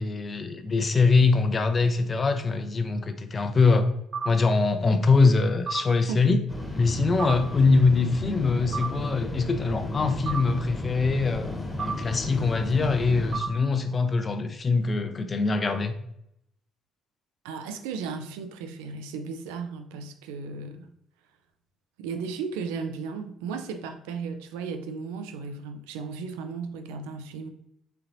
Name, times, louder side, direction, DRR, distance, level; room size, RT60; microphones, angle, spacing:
voice 1, 0.0-3.9 4.2-6.4 6.8-15.9, left 4 dB, 35° left, 8 dB, 0.5 m, -23 dB
sound 1, 4.1-4.3 5.7-5.8 7.2-7.4 8.7-8.9 10.3-10.4 11.8-12.0 13.3-13.5, right 5 dB, 55° right, 1.3 m, -30 dB
sound 2, 6.5-13.4, left 1 dB, 5° left, 1.1 m, -34 dB
voice 2, 17.4-20.9 22.0-27.5, right 5 dB, 70° right, 7 dB, 0.4 m, -35 dB
4.4 x 3.8 x 2.6 m, 0.77 s
figure-of-eight pair, 50°, 0 cm